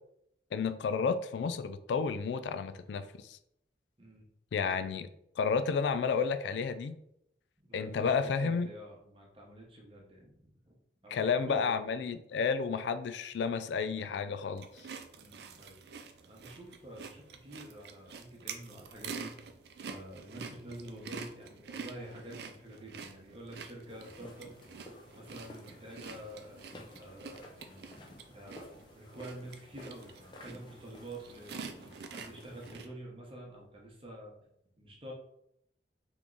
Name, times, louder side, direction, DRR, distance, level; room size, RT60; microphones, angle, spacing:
voice 1, 0.5-3.4 4.5-5.1 5.4-7.0 7.7-8.7 11.1-14.6, left 5 dB, 85° left, 0.3 m, -31 dB
voice 2, 7.6-10.8 11.0-11.8 15.1-15.8 16.2-19.3 19.8-24.5 25.1-28.0 28.3-34.5 34.8-35.1, right 1 dB, 30° right, 0.9 m, -48 dB
sound 1, 14.6-32.9, right 5 dB, 70° right, 0.4 m, -47 dB
sound 2, 23.9-32.7, left 1 dB, 25° left, 0.6 m, -53 dB
3.6 x 3.1 x 3.8 m
head